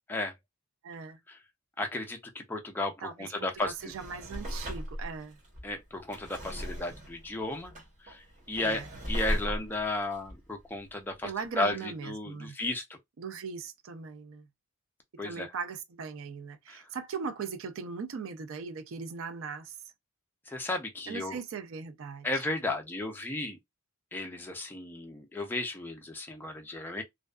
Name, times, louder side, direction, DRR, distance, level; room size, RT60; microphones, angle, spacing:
voice 1, 0.8-1.2 3.0-3.3 3.6-5.4 8.6-8.9 11.2-12.6 13.2-14.5 15.2-19.8 21.1-22.4, right 5 dB, 65° right, 0.4 m, -39 dB
voice 2, 1.8-2.9 3.2-3.7 5.6-7.7 8.0-8.2 8.5-11.3 11.6-12.8 15.2-15.5 16.7-16.8 20.5-21.4 22.2-23.6 24.1-27.0, left 2 dB, 10° left, 0.4 m, -34 dB
Drawer open or close, 3.6-11.3 11.7-11.8, equal, 35° right, 1.0 m, -38 dB
2.5 x 2.2 x 2.2 m
head